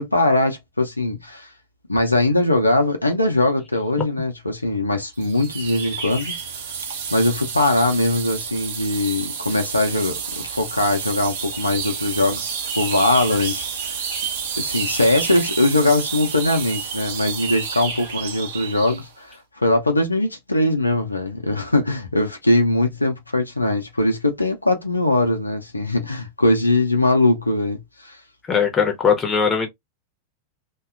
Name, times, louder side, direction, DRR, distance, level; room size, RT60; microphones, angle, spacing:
voice 1, 0.0-1.5 1.9-6.3 7.1-14.0 14.6-28.2, left 2 dB, 85° left, 0.5 m, -21 dB
sound 1, 5.2-19.1, right 6 dB, 60° right, 0.7 m, -30 dB
voice 2, 28.5-29.7, left 6 dB, 20° left, 0.7 m, -19 dB
2.7 x 2.2 x 2.4 m
figure-of-eight pair, 90°, 0 cm